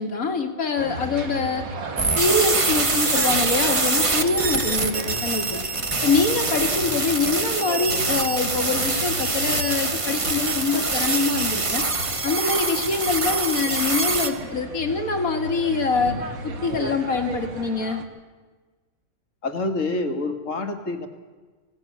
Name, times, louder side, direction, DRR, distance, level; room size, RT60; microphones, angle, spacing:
voice 1, 0.0-1.6 2.2-5.6 6.0-11.9 12.2-16.2 16.4-18.0, left 4 dB, 80° left, 5 dB, 2.3 m, -24 dB
sound 1, 0.8-18.1, right 2 dB, 85° right, 1.9 m, -35 dB
sound 2, 2.0-14.3, right 3 dB, 25° right, 1.1 m, -24 dB
voice 2, 19.4-21.1, left 2 dB, 65° left, 6 dB, 2.0 m, -27 dB
18.5 x 16.5 x 8.6 m, 1.4 s
omnidirectional pair, 1.4 m